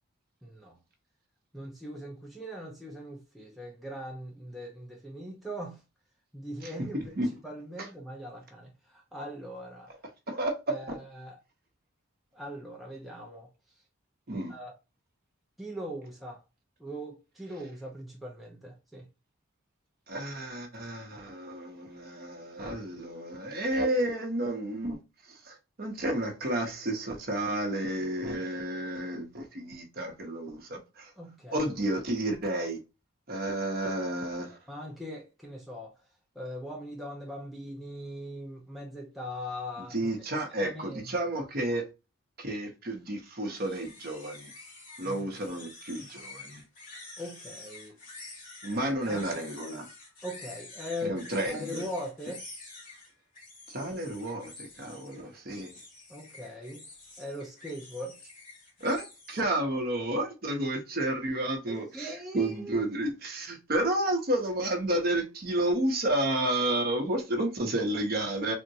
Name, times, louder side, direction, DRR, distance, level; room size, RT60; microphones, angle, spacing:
voice 1, 0.4-0.8 1.5-5.8 6.3-7.1 7.4-9.9 10.7-11.4 12.3-13.5 14.5-14.7 15.6-16.4 16.8-19.1 31.2-31.6 34.7-36.0 36.4-40.1 40.5-41.0 45.0-45.3 47.2-48.0 49.1-49.3 50.2-51.2 51.5-52.5 56.1-56.8 57.2-58.2 61.7-62.9, equal, ahead, 0.4 m, -40 dB
voice 2, 10.3-10.8 14.3-14.5 20.1-25.0 25.3-31.1 31.5-32.8 33.3-34.6 39.8-41.9 42.4-44.5 45.0-46.6 48.6-49.9 51.0-51.9 53.7-55.7 58.8-68.5, right 1 dB, 45° right, 0.7 m, -31 dB
sound 1, 43.5-59.4, left 2 dB, 40° left, 1.5 m, -48 dB
3.5 x 2.1 x 2.7 m
head